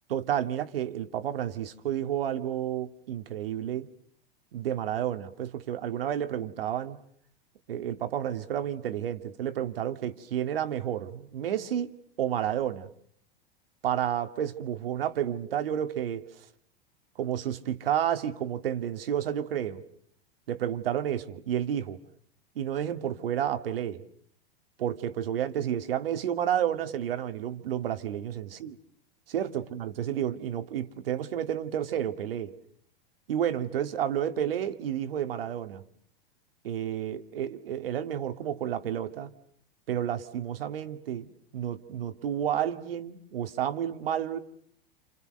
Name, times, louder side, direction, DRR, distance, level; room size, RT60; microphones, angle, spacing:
voice 1, 0.1-3.9 4.5-7.0 7.7-11.9 12.2-12.9 13.8-16.3 17.2-19.8 20.5-22.0 22.6-24.0 24.8-28.7 29.3-32.5 33.3-35.8 36.6-39.3 39.9-44.4, right 10 dB, 70° right, 10 dB, 2.2 m, -31 dB
29.0 x 28.5 x 6.5 m, 0.64 s
hypercardioid pair, 105°, 29 cm